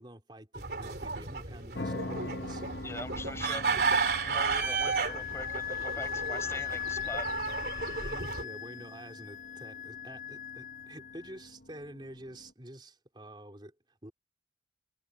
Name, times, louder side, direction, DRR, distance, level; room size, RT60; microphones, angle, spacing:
voice 1, 0.0-2.6 6.0-6.2 7.7-14.1, right 1 dB, 25° right, 3.6 m, -48 dB
sound 1, 0.5-8.4, right 4 dB, 60° right, 3.6 m, -33 dB
sound 2, 1.7-12.5, left 1 dB, 65° left, 1.4 m, -45 dB
voice 2, 2.8-7.3, left 2 dB, 15° left, 5.8 m, -42 dB
Wind instrument woodwind instrument, 4.0-11.4, left 10 dB, 50° left, 6.9 m, -39 dB
head